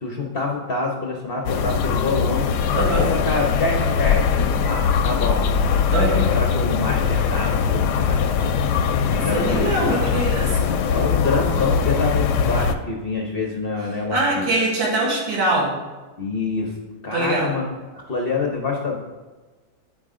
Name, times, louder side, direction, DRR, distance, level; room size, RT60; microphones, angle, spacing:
voice 1, 0.0-2.4 2.9-5.5 6.0-8.5 9.2-10.1 10.9-14.5 16.2-16.7 17.0-17.7 17.9-19.0, left 3 dB, 55° left, 0 dB, 0.6 m, -26 dB
sound 1, 1.5-12.8, left 6 dB, 75° left, 1.0 m, -21 dB
voice 2, 2.7-3.1 5.9-6.2 9.0-10.7 14.1-15.7 17.1-17.5, right 2 dB, 75° right, -5 dB, 2.4 m, -23 dB
9.8 x 4.9 x 3.7 m, 1.3 s
omnidirectional pair, 2.1 m